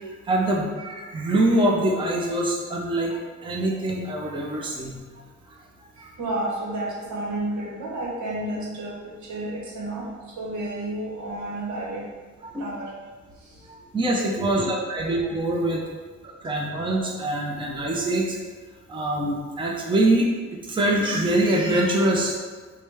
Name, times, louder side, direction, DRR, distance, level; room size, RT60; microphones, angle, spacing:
voice 1, 0.0-5.0 6.0-6.1 12.4-12.6 13.7-15.8 16.2-18.4 18.9-20.3 20.6-22.4, right 1 dB, 15° right, -2 dB, 0.6 m, -24 dB
voice 2, 6.2-10.1 10.4-12.0 12.6-12.9 13.4-13.6 14.4-14.7, right 1 dB, 75° right, -3 dB, 1.1 m, -31 dB
4.8 x 2.2 x 3.4 m, 1.4 s
cardioid pair, 90°, 30 cm